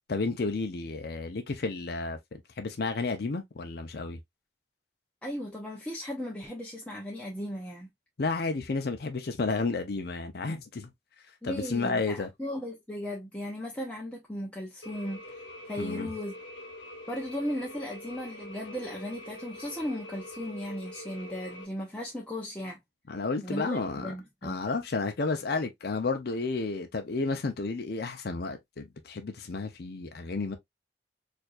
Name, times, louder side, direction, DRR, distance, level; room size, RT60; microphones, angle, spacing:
voice 1, 0.1-4.2 8.2-10.9 11.4-12.3 15.8-16.1 23.1-24.1 24.4-30.5, left 3 dB, 60° left, 0.5 m, -32 dB
voice 2, 5.2-7.9 11.4-16.3 17.1-22.8 23.4-24.6, equal, 5° left, 0.6 m, -36 dB
sound 1, 14.8-21.7, left 1 dB, 85° left, 0.9 m, -45 dB
4.4 x 2.6 x 2.3 m
head